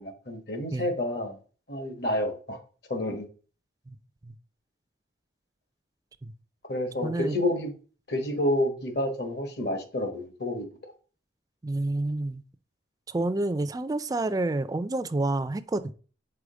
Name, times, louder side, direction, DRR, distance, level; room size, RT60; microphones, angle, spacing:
voice 1, 0.0-1.4 1.7-2.6 2.9-3.2 6.7-7.7 8.1-10.9, left 1 dB, 60° left, 1.3 m, -29 dB
voice 2, 7.0-7.3 11.6-12.4 13.1-15.9, right 2 dB, 20° right, 0.3 m, -29 dB
4.9 x 4.6 x 4.9 m
head